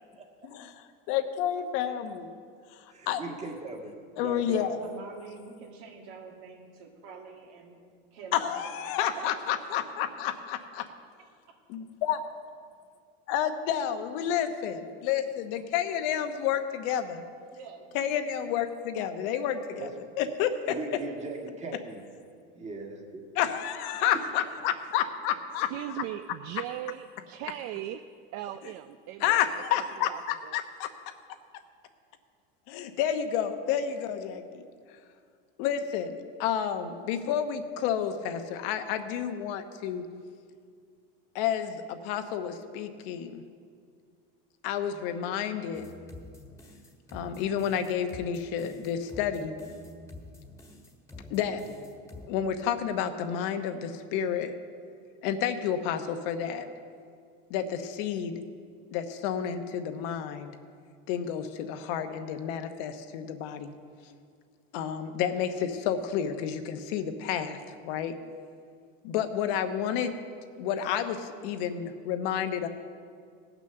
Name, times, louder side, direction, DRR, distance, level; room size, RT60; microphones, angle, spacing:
voice 1, 0.4-2.3 3.1-3.2 4.2-4.8 8.3-10.8 11.7-12.2 13.3-17.2 17.9-19.9 20.2-20.8 23.4-25.7 29.2-30.9 32.7-34.7 35.6-40.0 41.3-43.4 44.6-45.9 47.1-49.5 51.3-51.6 52.3-54.5 55.2-56.7 57.5-58.4 58.9-60.5 61.1-63.7 64.7-67.6 67.8-68.1 69.0-70.1 70.6-72.7, left 9 dB, 70° left, 8 dB, 1.1 m, -30 dB
voice 2, 2.9-4.7 19.8-19.9 20.6-22.0 22.6-23.2, right 3 dB, 25° right, 1 dB, 1.9 m, -39 dB
voice 3, 4.6-7.8 8.1-8.5 9.2-9.5 17.4-17.9, right 4 dB, 75° right, 1 dB, 2.5 m, -46 dB
voice 4, 25.7-28.0 28.3-29.5 30.0-30.6, right 12 dB, 55° right, 10 dB, 0.5 m, -38 dB
sound 1, 45.7-52.3, left 1 dB, 10° left, 1.5 m, -48 dB
17.5 x 6.2 x 6.7 m, 2.2 s
supercardioid pair, 130°, 29 cm